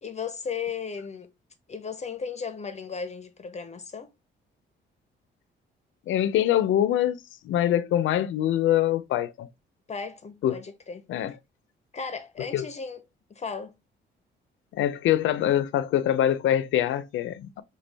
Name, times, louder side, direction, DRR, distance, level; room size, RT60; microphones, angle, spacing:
voice 1, 0.0-1.3 1.7-4.1 9.9-11.4 11.9-13.0 13.3-13.8, left 5 dB, 35° left, 0.8 m, -35 dB
voice 2, 6.1-7.2 7.4-9.5 10.4-10.6 11.1-11.3 12.5-12.7 14.7-17.6, left 11 dB, 80° left, 0.6 m, -24 dB
6.0 x 2.4 x 3.3 m
cardioid pair, 90°, 20 cm